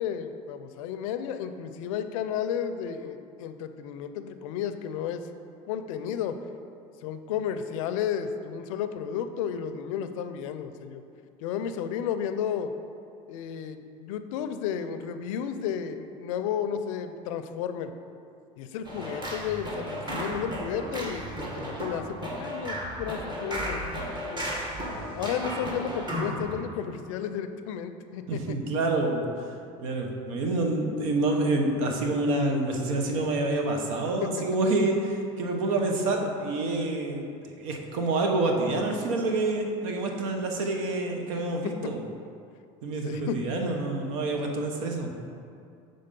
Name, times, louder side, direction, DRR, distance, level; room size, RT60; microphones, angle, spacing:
voice 1, 0.0-5.3 5.7-6.4 7.0-11.0 11.4-12.7 13.3-17.9 18.6-23.8 24.3-24.4 25.1-28.6 34.2-34.4 43.0-43.5, left 8 dB, 85° left, 9 dB, 0.4 m, -33 dB
sound 1, 18.8-26.5, equal, 25° right, 1.5 m, -34 dB
voice 2, 28.3-29.3 29.8-37.3 37.6-42.1 42.8-45.1, right 2 dB, 85° right, 2 dB, 0.9 m, -27 dB
6.6 x 3.8 x 5.3 m, 2.5 s
supercardioid pair, 100°, 17 cm